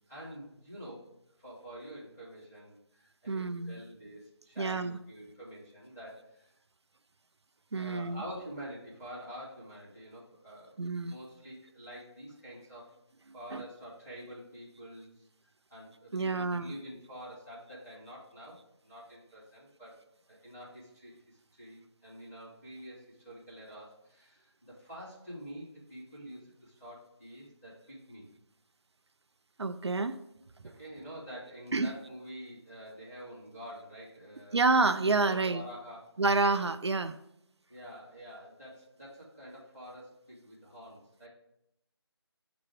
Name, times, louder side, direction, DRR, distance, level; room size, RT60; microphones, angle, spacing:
voice 1, 0.1-1.1 1.4-6.5 7.7-10.7 11.0-12.9 13.3-15.3 15.7-18.6 18.8-20.0 20.3-28.3 30.6-34.6 35.3-36.2 37.7-41.3, equal, 5° left, -16 dB, 0.9 m, -47 dB
voice 2, 3.3-3.8 4.6-5.0 7.7-8.2 10.8-11.1 13.5-13.6 16.1-16.7 29.6-30.2 31.7-31.9 34.5-35.6 36.2-37.2, right 3 dB, 75° right, 11 dB, 0.5 m, -28 dB
6.6 x 4.0 x 4.8 m, 0.79 s
figure-of-eight pair, 180°, 14 cm